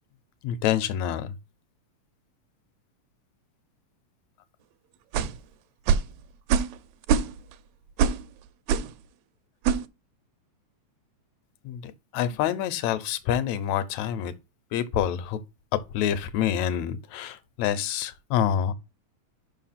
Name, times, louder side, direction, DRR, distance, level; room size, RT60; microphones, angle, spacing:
voice 1, 0.4-1.3 11.6-14.3 14.7-15.4 15.7-18.7, left 10 dB, 75° left, 2.0 m, -27 dB
sound 1, 5.1-5.4 5.9-6.1 6.5-6.8 7.0-7.5 8.0-8.2 8.7-8.9 9.6-9.9, right 7 dB, 80° right, 1.7 m, -23 dB
5.9 x 4.8 x 5.7 m
omnidirectional pair, 3.3 m